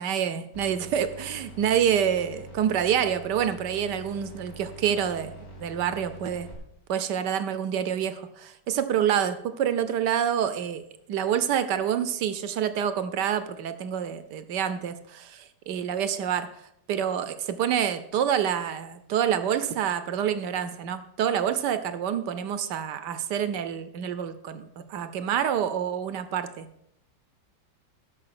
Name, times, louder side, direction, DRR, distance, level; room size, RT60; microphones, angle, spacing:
voice 1, 0.0-6.5 6.9-10.8 11.1-16.5 16.9-26.7, right 9 dB, 70° right, 12 dB, 1.3 m, -27 dB
sound 1, 0.5-6.5, right 1 dB, 50° left, 2.7 m, -45 dB
13.0 x 5.4 x 5.9 m, 0.77 s
omnidirectional pair, 2.0 m